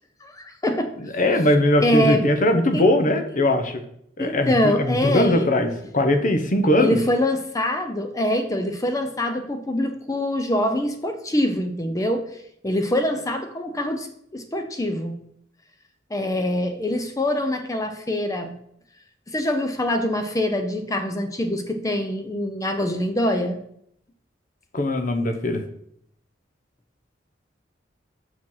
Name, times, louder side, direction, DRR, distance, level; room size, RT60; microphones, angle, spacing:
voice 1, 0.2-0.9 1.8-2.2 2.7-2.8 4.2-5.5 6.8-12.2 12.6-14.1 14.3-15.2 16.1-18.5 19.3-23.6, left 1 dB, 20° left, 6 dB, 0.6 m, -24 dB
voice 2, 1.0-3.8 4.2-7.0 24.7-25.6, left 1 dB, 45° left, 6 dB, 0.9 m, -20 dB
6.2 x 5.0 x 5.6 m, 0.72 s
head